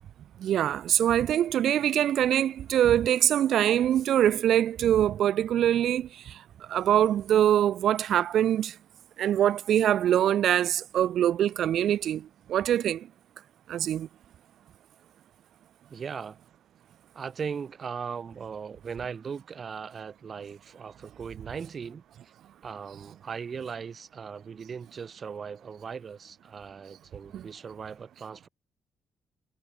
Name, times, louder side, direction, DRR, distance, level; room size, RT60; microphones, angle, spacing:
voice 1, 0.4-6.4 6.7-8.7 9.2-13.1 13.7-14.1 27.3-27.5, right 11 dB, 70° right, 0.4 m, -24 dB
voice 2, 15.9-16.4 17.1-22.3 22.6-28.5, right 6 dB, 45° right, 4.4 m, -38 dB
cardioid pair, 90°, 0 cm